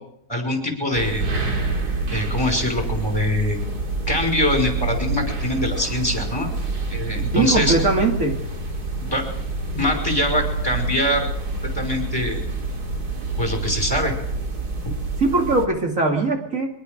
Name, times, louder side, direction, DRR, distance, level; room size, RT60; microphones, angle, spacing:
voice 1, 0.3-1.5 2.1-3.6 4.1-6.5 6.9-7.8 9.0-9.4 9.7-11.3 11.7-12.4 13.4-14.1, left 1 dB, 15° left, 3 dB, 5.5 m, -23 dB
sound 1, 0.9-15.7, right 3 dB, 80° right, 3.3 m, -27 dB
voice 2, 7.3-8.4 15.2-16.7, right 3 dB, 55° right, 1 dB, 3.1 m, -20 dB
23.5 x 22.5 x 5.3 m, 0.76 s
omnidirectional pair, 1.7 m